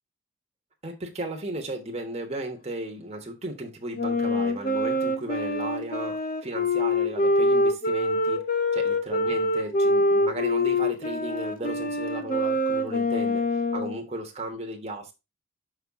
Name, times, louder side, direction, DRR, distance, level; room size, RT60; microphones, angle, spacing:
voice 1, 0.8-8.5 8.7-15.1, right 1 dB, 35° right, 1.3 m, -35 dB
Wind instrument woodwind instrument, 4.0-14.0, left 1 dB, 45° left, 0.8 m, -25 dB
5.6 x 5.5 x 3.6 m
head